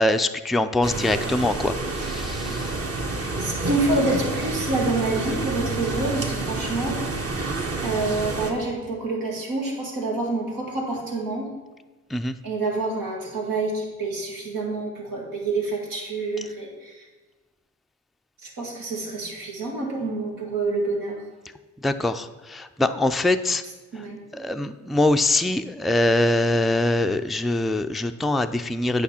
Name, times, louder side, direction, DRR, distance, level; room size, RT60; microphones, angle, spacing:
voice 1, 0.0-2.7 12.1-12.4 21.8-23.6 24.3-29.0, left 2 dB, ahead, 8 dB, 0.3 m, -23 dB
sound 1, 0.8-8.5, right 2 dB, 45° right, 1.2 m, -28 dB
voice 2, 3.2-7.0 7.8-11.5 12.4-17.0 18.4-21.2 23.9-24.2, right 2 dB, 90° right, -2 dB, 1.7 m, -27 dB
8.4 x 5.4 x 4.2 m, 1.2 s
cardioid pair, 55°, 33 cm